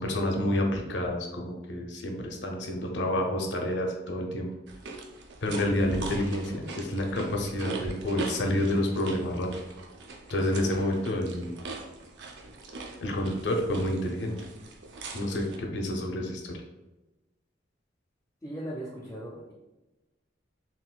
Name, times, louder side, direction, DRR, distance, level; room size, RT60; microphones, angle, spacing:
voice 1, 0.0-4.5 5.4-9.5 10.3-11.6 13.0-14.5 15.1-16.6, left 1 dB, 75° left, 2 dB, 0.6 m, -29 dB
sound 1, 4.7-15.6, right 2 dB, 70° right, 0.4 m, -41 dB
voice 2, 18.4-19.5, right 1 dB, 15° left, -4 dB, 0.4 m, -38 dB
3.7 x 2.3 x 2.3 m, 1.0 s
head